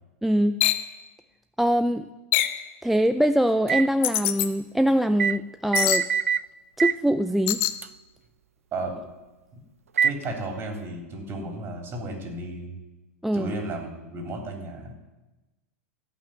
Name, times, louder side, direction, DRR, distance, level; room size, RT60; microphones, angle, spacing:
voice 1, 0.2-0.5 1.6-2.1 2.8-6.1 6.8-7.6 13.2-13.5, equal, ahead, 9 dB, 0.4 m, -23 dB
sound 1, 0.6-0.9 2.3-2.6 4.0-4.5 5.7-6.1 7.5-7.8, left 13 dB, 60° left, 0.9 m, -24 dB
sound 2, 3.7-3.9 5.2-5.4 5.7-6.5 6.8-7.0 7.8-7.9 10.0-10.2, right 7 dB, 90° right, 0.3 m, -24 dB
voice 2, 10.0-12.8 13.3-14.9, right 2 dB, 30° right, 2 dB, 3.5 m, -33 dB
14.5 x 5.9 x 9.0 m, 1.1 s
hypercardioid pair, 105°, 7 cm